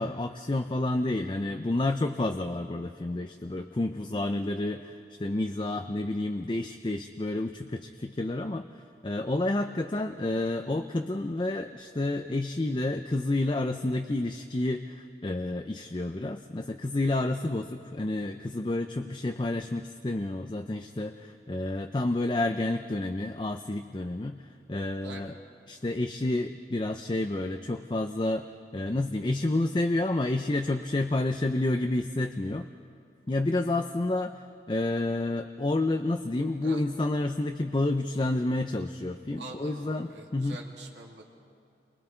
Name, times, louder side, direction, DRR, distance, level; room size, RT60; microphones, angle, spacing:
voice 1, 0.0-24.4 24.7-25.3 25.7-28.5 28.7-32.7 33.3-40.6, left 2 dB, 25° left, 6 dB, 0.5 m, -30 dB
voice 2, 39.4-41.3, right 2 dB, 85° right, -2 dB, 2.6 m, -45 dB
30.0 x 24.0 x 4.5 m, 2.4 s
head